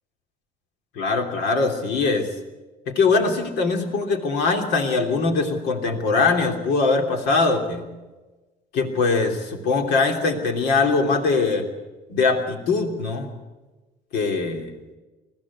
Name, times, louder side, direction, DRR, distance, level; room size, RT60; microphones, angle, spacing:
voice 1, 0.9-2.3 2.9-7.9 8.7-11.7 12.1-13.3 14.1-14.7, left 4 dB, 90° left, 5 dB, 3.0 m, -22 dB
21.5 x 14.5 x 9.7 m, 1.2 s
cardioid pair, 110°, 17 cm